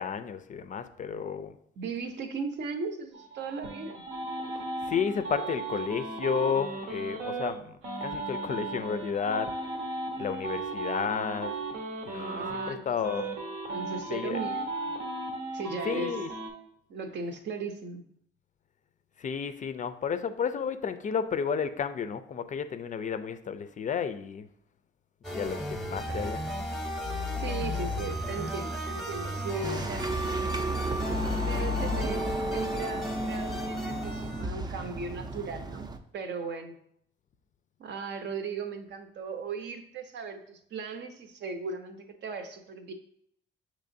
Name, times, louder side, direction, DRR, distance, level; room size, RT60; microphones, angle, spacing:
voice 1, 0.0-1.5 4.5-9.8 10.2-11.5 12.1-13.3 14.1-14.4 15.8-16.3 19.2-24.5 25.3-26.4, left 6 dB, 40° left, 11 dB, 0.4 m, -32 dB
voice 2, 1.8-4.0 12.1-12.8 13.7-14.9 15.5-16.1 16.9-18.0 26.1-26.3 27.4-30.1 31.5-36.8 37.8-42.9, right 4 dB, 65° right, 7 dB, 0.7 m, -37 dB
sound 1, 3.1-7.5 7.8-12.7 13.0-16.5, right 3 dB, 85° right, 1.0 m, -36 dB
sound 2, 25.2-34.5, left 1 dB, ahead, 0.8 m, -33 dB
sound 3, 29.6-36.0, right 2 dB, 20° right, 0.4 m, -36 dB
6.5 x 3.0 x 2.6 m, 0.69 s
cardioid pair, 90°, 20 cm